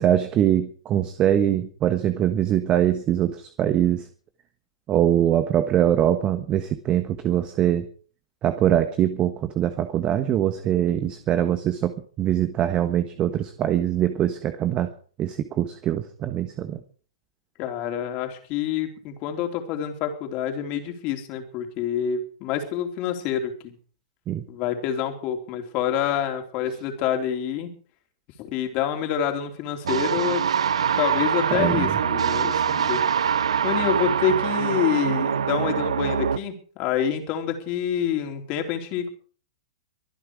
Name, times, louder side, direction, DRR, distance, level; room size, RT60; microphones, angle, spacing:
voice 1, 0.0-4.1 4.9-7.8 8.4-14.9 15.2-16.8 24.3-24.4 31.5-32.0, right 11 dB, 30° right, 10 dB, 1.3 m, -23 dB
voice 2, 17.6-23.7 24.5-27.7 28.4-30.4 31.0-33.0 33.6-39.1, left 8 dB, 40° left, 4 dB, 3.8 m, -27 dB
sound 1, 29.8-36.4, right 7 dB, 75° right, 0.8 m, -24 dB
24.0 x 9.9 x 4.9 m, 0.44 s
hypercardioid pair, 115°, 3 cm